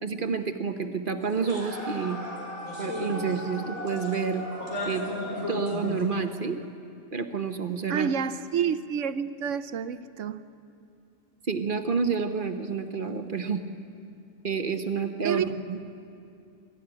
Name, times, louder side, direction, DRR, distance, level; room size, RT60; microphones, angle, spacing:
voice 1, 0.0-2.2 2.8-4.4 4.9-5.0 5.5-6.6 7.1-8.1 11.5-13.6 14.4-15.8, right 5 dB, 45° right, 1.1 m, -29 dB
sound 1, 1.2-6.0, equal, 60° left, 7.9 m, -38 dB
sound 2, 1.5-1.7 2.0-2.1 2.6-3.6 3.9-4.2 4.5-6.0, left 2 dB, 75° left, 4.5 m, -35 dB
voice 2, 7.9-10.5 15.2-15.6, right 7 dB, 70° right, 1.0 m, -29 dB
24.0 x 13.5 x 9.9 m
omnidirectional pair, 1.4 m